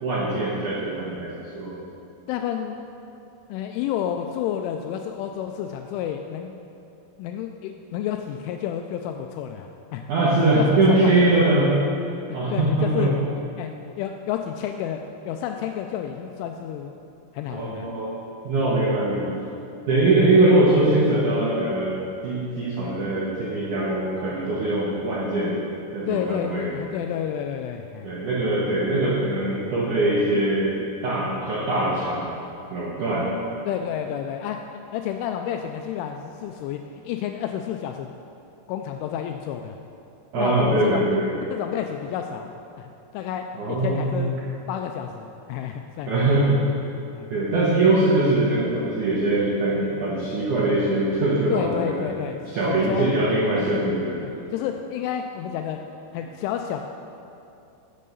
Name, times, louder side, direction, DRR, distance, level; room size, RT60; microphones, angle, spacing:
voice 1, 0.0-1.8 10.1-11.7 12.3-13.1 17.5-18.1 18.4-19.3 19.9-25.6 25.9-26.7 28.0-32.4 32.7-33.3 40.3-41.2 43.5-44.3 46.1-46.6 47.3-52.1 52.5-54.2, right 2 dB, 80° right, -6 dB, 1.7 m, -22 dB
voice 2, 2.3-2.8 3.5-6.5 7.2-10.0 10.5-11.4 12.3-13.1 13.6-16.9 17.3-17.9 18.6-18.7 19.9-20.0 26.1-28.1 33.7-34.6 34.9-38.1 38.7-39.8 40.4-41.2 41.5-44.3 44.7-46.4 47.1-47.3 51.5-52.4 52.7-53.1 53.5-53.8 54.2-55.8 56.1-56.8, left 9 dB, 85° left, 4 dB, 2.8 m, -30 dB
11.0 x 7.4 x 6.9 m, 2.8 s
omnidirectional pair, 5.8 m